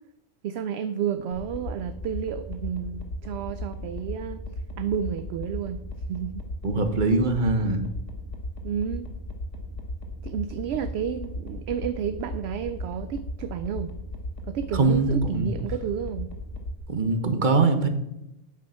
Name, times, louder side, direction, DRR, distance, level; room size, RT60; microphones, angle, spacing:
voice 1, 0.4-4.4 4.8-5.8 6.1-6.4 8.6-9.1 10.2-14.0 14.5-16.3, right 8 dB, 65° right, 11 dB, 0.7 m, -31 dB
sound 1, 1.3-16.8, left 1 dB, 65° left, 1.7 m, -36 dB
voice 2, 6.6-7.8 14.7-15.5 16.9-17.9, right 3 dB, 40° right, 8 dB, 1.1 m, -22 dB
8.6 x 7.3 x 5.6 m, 0.88 s
omnidirectional pair, 1.3 m